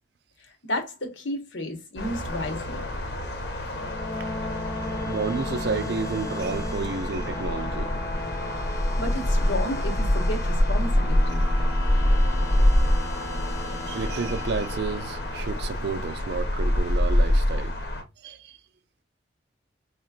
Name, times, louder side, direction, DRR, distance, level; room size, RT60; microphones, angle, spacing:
voice 1, 0.6-2.9 8.7-11.5, left 1 dB, 85° left, 1.2 m, -32 dB
sound 1, 2.0-18.0, left 1 dB, 65° left, 1.0 m, -26 dB
sound 2, 3.7-16.0, left 2 dB, 15° left, 0.5 m, -37 dB
voice 2, 5.1-7.9 13.9-17.8 18.2-18.6, right 4 dB, 60° right, 0.4 m, -31 dB
4.4 x 3.0 x 2.4 m
head